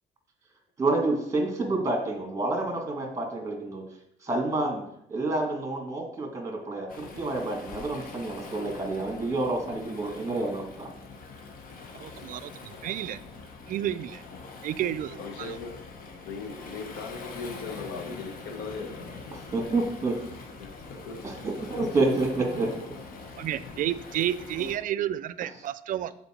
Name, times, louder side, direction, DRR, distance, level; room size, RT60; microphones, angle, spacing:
voice 1, 0.8-3.8 4.2-4.8 5.1-10.9 19.5-20.2 21.2-22.7, right 2 dB, 20° right, 2 dB, 1.8 m, -28 dB
Waves surf, 6.9-24.8, left 4 dB, 55° left, 1.1 m, -44 dB
voice 2, 12.0-13.2 13.7-14.2 14.6-15.6 23.4-26.1, right 11 dB, 55° right, 15 dB, 0.4 m, -31 dB
voice 3, 15.2-15.8 16.2-19.1 19.6-19.7 20.6-21.2 21.8-22.2 24.6-24.7, left 4 dB, 85° left, 4 dB, 1.2 m, -39 dB
6.9 x 4.3 x 4.4 m, 0.75 s
cardioid pair, 110°, 17 cm